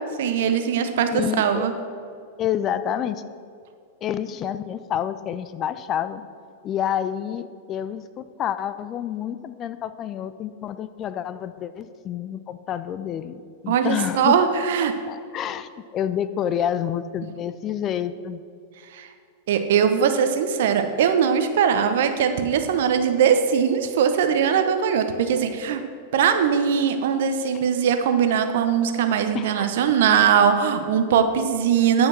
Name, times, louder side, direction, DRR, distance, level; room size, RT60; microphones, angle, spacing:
voice 1, 0.0-1.7 13.7-14.9 18.9-19.1 19.5-25.8 26.1-32.1, right 7 dB, 60° right, 8 dB, 0.8 m, -21 dB
voice 2, 1.1-1.7 2.4-3.2 4.0-6.2 6.6-14.4 15.1-18.4 27.5-27.6 29.3-29.7, left 9 dB, 30° left, 13 dB, 0.4 m, -28 dB
10.0 x 5.7 x 5.9 m, 2.4 s
figure-of-eight pair, 95°, 0 cm